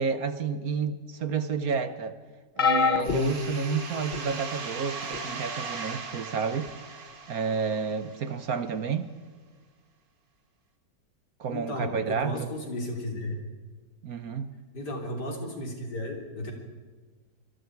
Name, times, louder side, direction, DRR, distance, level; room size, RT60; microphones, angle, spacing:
voice 1, 0.0-2.2 2.6-6.7 7.3-9.1 11.4-12.5 14.0-14.5, right 6 dB, 60° right, 11 dB, 1.4 m, -30 dB
sound 1, 2.6-4.4 5.1-5.4 6.7-6.8, left 5 dB, 35° left, 0.8 m, -27 dB
sound 2, 3.0-8.5, right 4 dB, 90° right, 2.9 m, -39 dB
voice 2, 11.5-13.4 14.7-16.5, left 1 dB, 65° left, 1 dB, 4.0 m, -34 dB
25.5 x 21.5 x 4.7 m, 1.4 s
omnidirectional pair, 1.9 m